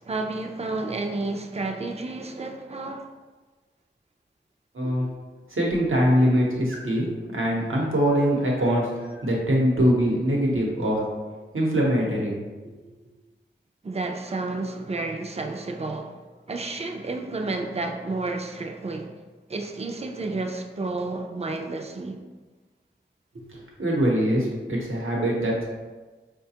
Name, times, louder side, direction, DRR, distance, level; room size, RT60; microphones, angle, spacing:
voice 1, 0.0-3.1 13.8-16.2 16.5-19.2 19.5-22.2, right 3 dB, 30° right, 0.4 m, -31 dB
voice 2, 4.7-5.1 5.5-7.1 7.3-11.1 11.5-12.4 23.3-23.5 23.8-25.7, equal, 85° right, 0.9 m, -23 dB
4.6 x 2.2 x 2.8 m
wide cardioid pair, 50°, 20 cm